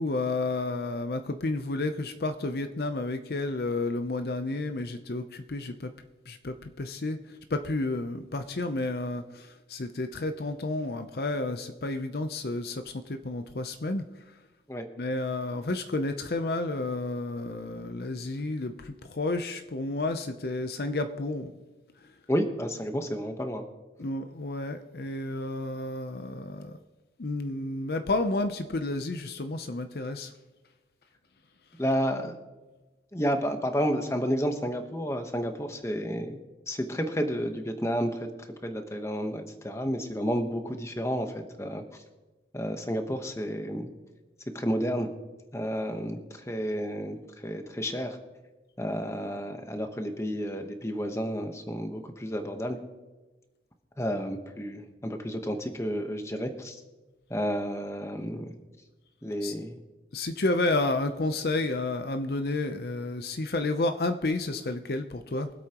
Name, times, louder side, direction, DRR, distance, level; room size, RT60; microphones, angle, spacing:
voice 1, 0.0-5.9 6.3-14.0 15.0-21.5 22.0-22.1 24.0-26.8 27.2-30.3 59.4-59.6 60.1-65.5, left 2 dB, 60° left, 8 dB, 0.6 m, -31 dB
voice 2, 22.3-23.6 31.8-32.4 33.1-36.4 36.7-38.3 38.6-41.8 42.5-43.9 44.5-45.1 45.5-48.2 48.8-52.8 54.0-56.8 57.3-58.5 59.2-59.8, equal, 15° left, 5 dB, 1.0 m, -31 dB
23.5 x 8.4 x 3.0 m, 1.2 s
head